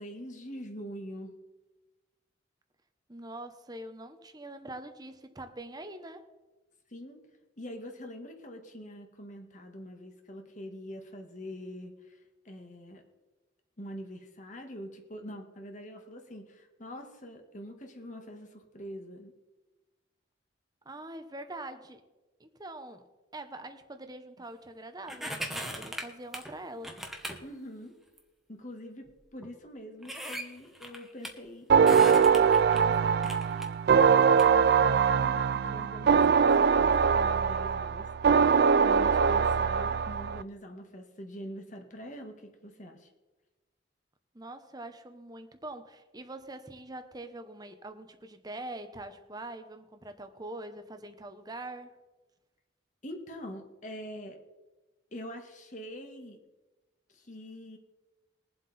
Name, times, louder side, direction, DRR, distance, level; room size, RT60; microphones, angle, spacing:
voice 1, 0.0-1.4 6.9-7.2 7.6-12.2 12.5-13.0 13.8-19.3 27.4-27.9 28.5-43.1 53.0-54.4 55.1-56.4 57.1-57.8, equal, 40° left, 4 dB, 1.8 m, -44 dB
voice 2, 3.1-6.2 20.8-22.0 22.4-23.1 23.3-26.9 44.3-51.9, right 1 dB, 20° right, 8 dB, 1.0 m, -43 dB
sound 1, 25.1-26.5 26.8-27.4 28.2-28.3 29.1-29.2 29.4-29.5 30.0-31.3 31.8-32.8 33.2-34.4 34.9-35.0, equal, ahead, 1.2 m, -38 dB
sound 2, 31.7-40.4, right 6 dB, 55° right, 0.3 m, -22 dB
21.0 x 7.7 x 4.3 m, 1.1 s
head